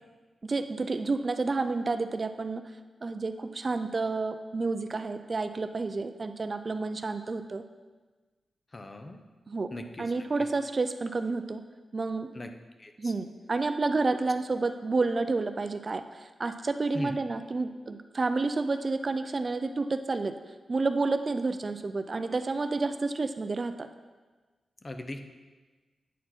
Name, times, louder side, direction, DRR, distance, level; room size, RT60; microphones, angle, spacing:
voice 1, 0.4-2.6 3.0-7.6 9.5-9.7 10.0-11.6 11.9-12.3 13.0-16.1 16.4-20.3 20.7-23.9, right 3 dB, 40° right, 9 dB, 0.4 m, -30 dB
voice 2, 8.7-9.2 9.7-10.1 12.3-12.5 12.8-13.1 16.9-17.1 24.8-25.2, left 1 dB, 35° left, 6 dB, 0.6 m, -39 dB
9.1 x 4.3 x 4.3 m, 1.3 s
cardioid pair, 85°, 0 cm